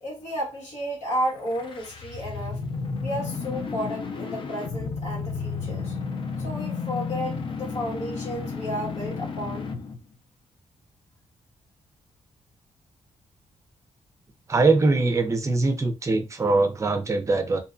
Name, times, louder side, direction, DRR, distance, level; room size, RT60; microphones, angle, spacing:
voice 1, 0.0-2.6 3.0-6.0 6.4-9.7, equal, 75° left, 1.5 m, -32 dB
sound 1, 1.4-10.0, left 5 dB, 45° left, 0.4 m, -32 dB
voice 2, 14.5-17.6, right 3 dB, 25° right, 0.5 m, -22 dB
2.7 x 2.1 x 2.5 m
cardioid pair, 105°, 12 cm